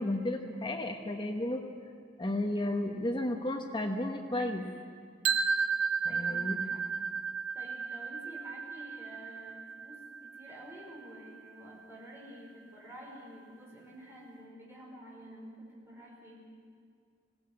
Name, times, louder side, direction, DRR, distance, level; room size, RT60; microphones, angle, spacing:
voice 1, 0.0-1.6 2.2-4.7 6.0-6.6, left 1 dB, 25° left, 3 dB, 1.2 m, -33 dB
sound 1, 5.2-11.2, right 5 dB, 80° right, 1.2 m, -33 dB
voice 2, 6.1-6.8 7.5-16.5, equal, 15° right, -4 dB, 5.3 m, -50 dB
19.5 x 17.0 x 8.6 m, 2.1 s
head